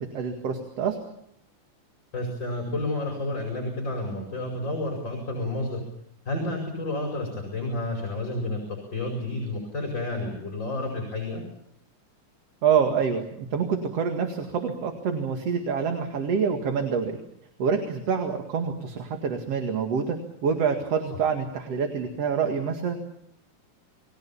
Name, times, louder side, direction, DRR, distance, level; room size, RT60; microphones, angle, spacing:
voice 1, 0.1-1.0 12.6-17.1 17.6-20.2 20.4-23.0, right 6 dB, 55° right, 5 dB, 2.9 m, -26 dB
voice 2, 2.1-5.8 6.3-11.4 21.1-21.2, left 2 dB, 35° left, 0 dB, 5.7 m, -30 dB
29.0 x 21.0 x 7.1 m, 0.76 s
omnidirectional pair, 3.4 m